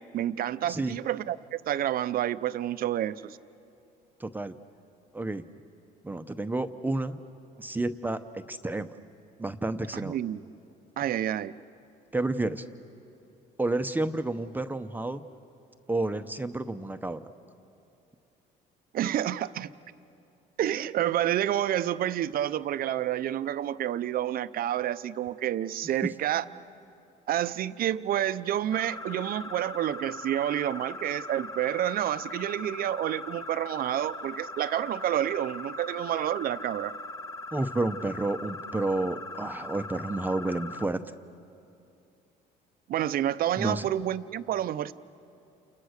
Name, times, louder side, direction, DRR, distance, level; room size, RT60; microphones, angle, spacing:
voice 1, 0.1-3.4 9.9-10.4 11.0-11.5 18.9-19.7 20.6-26.4 27.3-36.9 42.9-44.9, right 12 dB, 60° right, 13 dB, 0.7 m, -29 dB
voice 2, 4.2-4.5 5.1-5.4 6.0-7.2 7.6-8.9 9.4-10.2 12.1-12.6 13.6-15.2 15.9-17.2 37.5-41.0 43.6-43.9, right 2 dB, 10° right, 8 dB, 0.8 m, -30 dB
sound 1, 28.7-40.8, left 2 dB, 20° left, 0.7 m, -40 dB
29.5 x 29.0 x 6.6 m, 2.7 s
cardioid pair, 110°, 17 cm